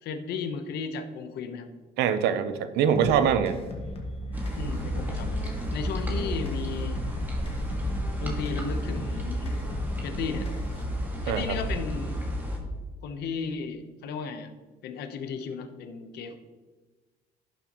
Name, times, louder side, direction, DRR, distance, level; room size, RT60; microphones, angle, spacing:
voice 1, 0.0-1.7 4.6-5.4 5.7-7.0 8.2-9.6 10.0-10.5 11.2-12.2 13.0-14.5 14.8-16.3, left 5 dB, 75° left, 8 dB, 1.0 m, -35 dB
voice 2, 2.0-3.6 11.3-11.6, right 8 dB, 85° right, 11 dB, 0.8 m, -24 dB
sound 1, 3.0-10.9, equal, 35° left, 1.6 m, -38 dB
sound 2, 4.3-12.6, equal, 10° right, 2.1 m, -32 dB
11.0 x 6.8 x 3.0 m, 1.3 s
cardioid pair, 110°, 17 cm